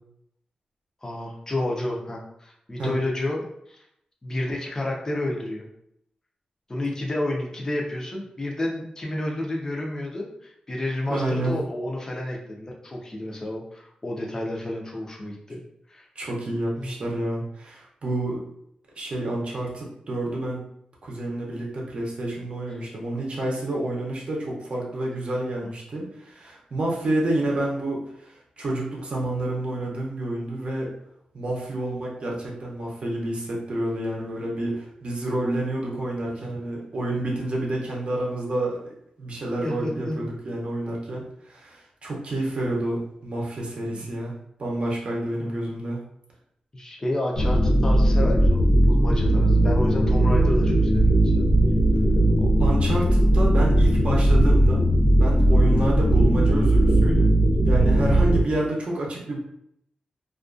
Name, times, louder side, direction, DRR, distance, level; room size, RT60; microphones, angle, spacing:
voice 1, 1.0-3.8 4.2-5.7 6.7-15.6 15.9-16.1 16.8-17.0 23.1-23.3 25.6-25.7 39.6-40.2 43.9-44.1 45.3-45.5 46.7-51.5 52.4-52.5, left 1 dB, 25° left, -1 dB, 0.5 m, -30 dB
voice 2, 11.1-11.5 16.2-18.4 19.0-20.6 21.0-30.9 31.3-38.9 39.2-44.3 44.6-46.0 52.6-54.8 55.2-57.3 57.6-59.4, right 1 dB, 55° right, -3 dB, 0.7 m, -29 dB
sound 1, 47.3-58.4, right 1 dB, 70° left, 1.1 m, -18 dB
2.4 x 2.2 x 2.4 m, 0.74 s
wide cardioid pair, 120°, 2 cm